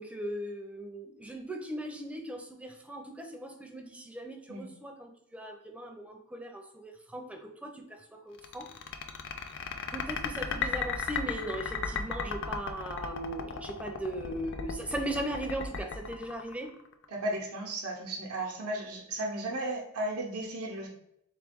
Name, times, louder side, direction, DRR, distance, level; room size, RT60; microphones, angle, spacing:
voice 1, 0.0-8.0 8.3-8.7 9.9-16.7, right 1 dB, 5° right, 3 dB, 0.4 m, -38 dB
sound 1, 8.4-17.1, left 6 dB, 55° left, 0.4 m, -35 dB
voice 2, 17.1-20.9, right 1 dB, 85° right, 0 dB, 0.7 m, -35 dB
3.7 x 3.0 x 3.4 m, 0.76 s
head